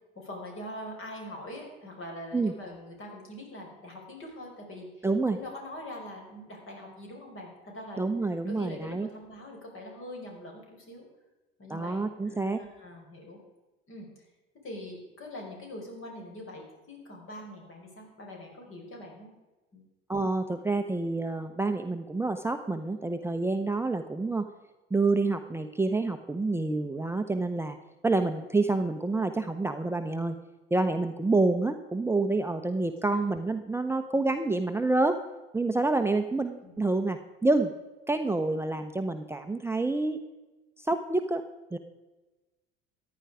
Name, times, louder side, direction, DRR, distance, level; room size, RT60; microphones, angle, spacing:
voice 1, 0.2-8.1 8.5-11.1 11.6-13.4 13.9-14.2 14.6-19.3 19.7-19.8 33.1-33.2 36.6-36.7, left 1 dB, 40° left, 0 dB, 5.5 m, -43 dB
voice 2, 5.0-5.4 8.0-9.1 11.7-12.6 20.1-24.5 24.9-27.8 28.0-30.4 30.7-35.2 35.5-37.7 38.1-40.2 40.8-41.4 41.7-41.8, right 3 dB, 10° right, 6 dB, 0.8 m, -28 dB
14.5 x 10.5 x 4.9 m, 1.1 s
hypercardioid pair, 65°, 31 cm